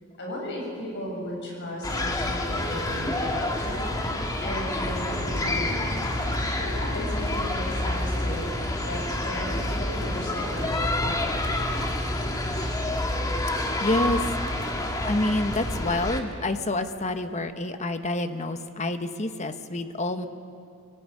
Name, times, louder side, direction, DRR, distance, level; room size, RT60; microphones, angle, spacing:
voice 1, 0.2-5.8 6.6-11.6, left 1 dB, 55° left, -2 dB, 7.3 m, -35 dB
sound 1, 1.8-16.2, left 1 dB, 15° left, 1.9 m, -28 dB
voice 2, 13.8-14.2 15.0-20.3, left 2 dB, 35° left, 8 dB, 1.1 m, -28 dB
23.0 x 17.5 x 9.6 m, 2.5 s
head